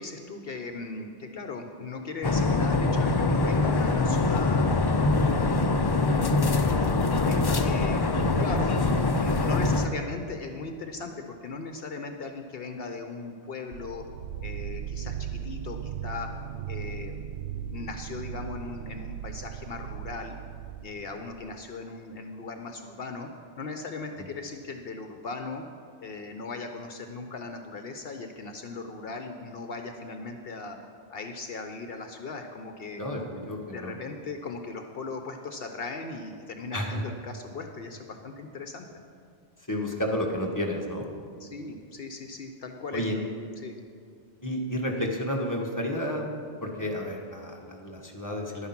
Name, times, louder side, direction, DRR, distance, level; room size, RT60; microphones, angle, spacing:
voice 1, 0.0-4.7 5.1-5.8 6.2-8.8 9.2-14.1 14.4-16.3 16.7-17.2 17.7-20.4 20.8-23.3 23.6-25.6 26.0-30.8 31.1-33.0 33.6-38.9 41.4-43.3 43.6-43.8, left 4 dB, 60° left, 5 dB, 0.9 m, -38 dB
sound 1, 2.2-9.9, left 3 dB, 35° left, 0.4 m, -24 dB
sound 2, 13.7-21.5, right 9 dB, 70° right, 0.8 m, -37 dB
voice 2, 33.5-33.9 36.7-37.0 39.7-41.0 42.9-43.2 44.4-46.3 46.6-48.7, equal, 15° left, 0 dB, 1.4 m, -31 dB
11.5 x 9.7 x 5.9 m, 2.3 s
omnidirectional pair, 1.1 m